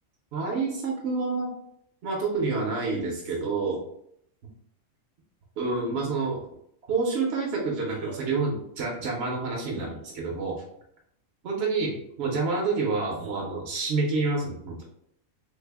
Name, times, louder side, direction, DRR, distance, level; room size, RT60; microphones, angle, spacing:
voice 1, 0.3-1.5 2.0-3.8 5.6-6.4 6.9-10.5 11.4-14.8, right 3 dB, 60° right, -2 dB, 0.9 m, -28 dB
3.3 x 2.0 x 3.3 m, 0.73 s
omnidirectional pair, 1.4 m